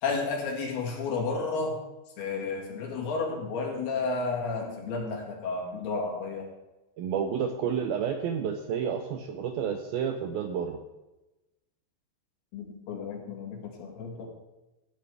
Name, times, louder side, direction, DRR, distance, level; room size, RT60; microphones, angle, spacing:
voice 1, 0.0-1.8 2.2-6.5 12.5-14.3, left 4 dB, 65° left, 0 dB, 3.9 m, -32 dB
voice 2, 7.0-10.8, right 7 dB, 80° right, 5 dB, 2.2 m, -30 dB
17.0 x 10.0 x 3.5 m, 1.0 s
omnidirectional pair, 5.0 m